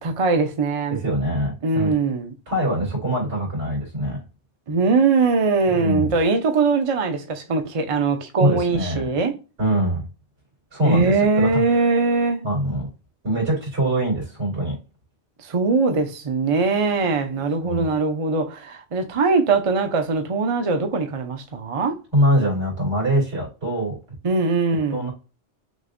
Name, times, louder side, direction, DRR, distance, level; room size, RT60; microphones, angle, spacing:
voice 1, 0.0-1.0 1.6-2.3 4.7-9.3 10.8-12.5 15.4-22.0 24.2-25.1, right 4 dB, 35° right, 0.7 m, -21 dB
voice 2, 0.9-1.9 2.5-4.2 5.7-6.1 8.4-9.0 9.6-10.1 10.7-11.6 12.4-12.9 13.2-14.7 17.6-17.9 22.1-24.0 24.9-25.1, right 1 dB, 85° right, 3.1 m, -23 dB
6.3 x 2.5 x 2.5 m
omnidirectional pair, 1.1 m